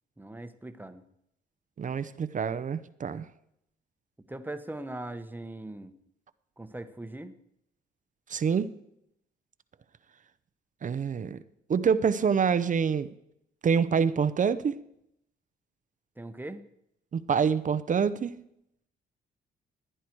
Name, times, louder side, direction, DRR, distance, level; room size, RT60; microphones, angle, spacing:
voice 1, 0.2-1.0 4.3-5.9 6.6-7.3 16.2-16.6, right 2 dB, 10° right, 10 dB, 1.0 m, -40 dB
voice 2, 1.8-3.3 8.3-8.7 10.8-11.4 11.7-13.1 13.6-14.7 17.1-18.4, right 6 dB, 40° right, 13 dB, 0.7 m, -26 dB
15.5 x 10.0 x 4.6 m, 0.77 s
cardioid pair, 90°, 20 cm